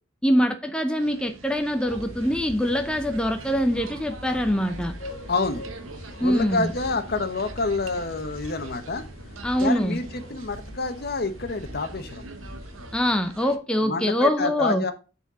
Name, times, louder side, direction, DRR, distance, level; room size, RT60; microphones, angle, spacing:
voice 1, 0.2-4.9 6.2-6.7 9.4-10.0 12.9-14.8, equal, 5° left, 0.6 m, -24 dB
sound 1, 1.0-13.6, right 3 dB, 85° right, 1.1 m, -45 dB
sound 2, 1.9-13.0, left 1 dB, 30° left, 1.9 m, -41 dB
voice 2, 5.3-5.6 6.2-9.0 9.6-12.3 13.8-14.9, left 3 dB, 50° left, 1.0 m, -28 dB
7.4 x 4.4 x 6.7 m
head